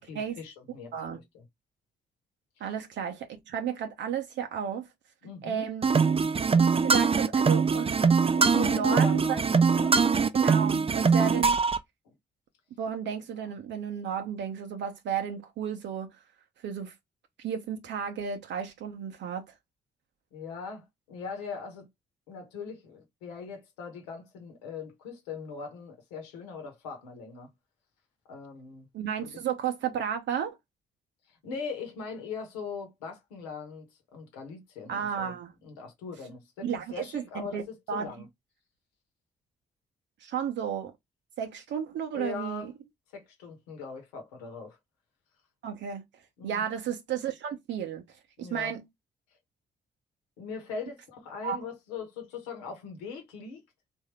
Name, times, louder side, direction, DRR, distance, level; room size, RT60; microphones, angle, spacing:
voice 1, 0.0-1.4 2.6-2.7 5.2-5.7 8.4-10.0 12.0-12.2 20.3-21.9 22.3-27.5 28.3-28.9 29.2-29.3 31.4-35.4 35.6-38.3 42.1-42.7 43.1-44.8 46.4-46.7 48.4-48.7 50.4-53.6, left 5 dB, 85° left, 1.1 m, -40 dB
voice 2, 2.6-4.9 5.4-5.9 6.6-7.9 8.5-9.4 10.3-11.6 12.8-16.1 16.6-16.9 17.4-19.5 28.9-30.6 34.9-35.5 36.6-38.1 40.2-40.9 41.4-42.7 45.6-46.0 46.4-48.8 51.4-51.6, right 8 dB, 65° right, 0.7 m, -33 dB
sound 1, 5.8-11.8, right 5 dB, 30° right, 0.5 m, -22 dB
3.6 x 2.6 x 3.2 m
hypercardioid pair, 40°, 20 cm